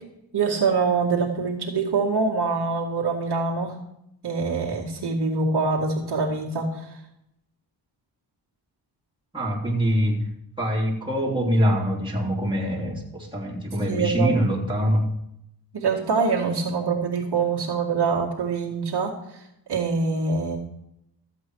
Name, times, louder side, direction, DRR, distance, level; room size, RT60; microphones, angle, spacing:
voice 1, 0.3-3.7 4.2-7.0 13.9-14.3 15.7-19.4 19.7-20.6, right 4 dB, 65° right, -2 dB, 2.2 m, -24 dB
voice 2, 9.3-10.3 10.6-15.1, equal, 10° right, -4 dB, 3.1 m, -24 dB
13.5 x 8.2 x 4.7 m, 0.80 s
cardioid pair, 85°, 43 cm